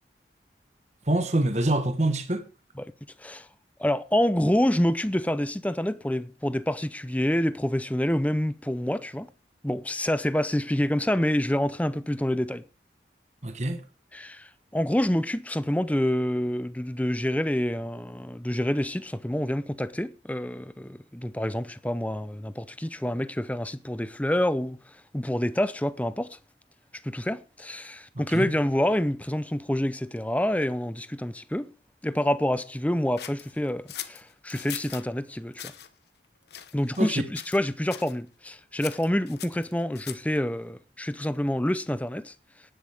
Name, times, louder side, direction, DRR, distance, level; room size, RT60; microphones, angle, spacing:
voice 1, 1.1-2.5 13.4-13.8 28.1-28.5 37.0-37.2, right 1 dB, 40° right, 1.3 m, -25 dB
voice 2, 3.8-9.3 9.6-12.6 14.1-26.4 27.0-31.7 32.0-35.7 36.7-42.3, left 1 dB, 10° left, 0.6 m, -27 dB
sound 1, 33.2-35.1 35.5-35.9 36.5-37.1 37.4-37.6 37.9-38.2 38.8-40.4, left 11 dB, 70° left, 1.1 m, -40 dB
18.0 x 10.5 x 3.6 m
head